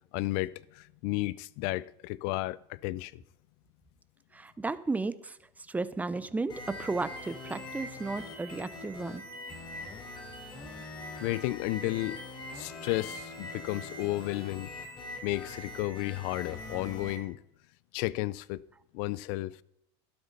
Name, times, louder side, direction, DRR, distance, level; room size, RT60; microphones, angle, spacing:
voice 1, 0.1-3.2 9.7-9.9 11.2-12.2 12.5-14.7 15.2-17.4 17.9-18.6 18.9-19.6, left 18 dB, 65° left, 0.5 m, -33 dB
voice 2, 4.3-5.4 5.7-9.2, right 3 dB, 10° right, 0.7 m, -34 dB
sound 1, 6.5-17.2, left 1 dB, 35° left, 3.9 m, -43 dB
12.0 x 12.0 x 4.0 m
supercardioid pair, 115°, 14 cm